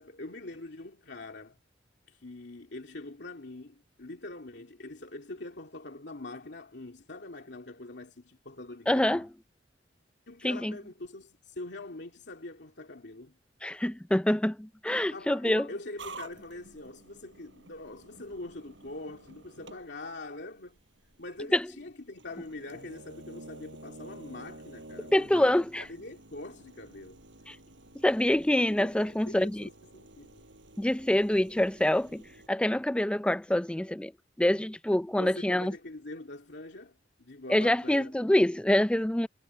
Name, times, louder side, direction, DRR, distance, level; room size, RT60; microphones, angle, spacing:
voice 1, 0.0-1.6 2.1-9.3 10.3-13.4 15.1-20.8 21.2-27.2 28.7-30.4 35.1-38.1, left 2 dB, 70° left, 2.7 m, -43 dB
voice 2, 8.9-9.3 10.4-10.7 13.6-15.7 21.5-21.7 25.1-25.8 27.5-27.6 28.0-29.7 30.8-32.2 32.5-34.1 34.4-35.7 37.5-39.3, left 1 dB, 5° left, 0.4 m, -26 dB
sound 1, 16.0-32.5, right 2 dB, 85° right, 6.7 m, -51 dB
head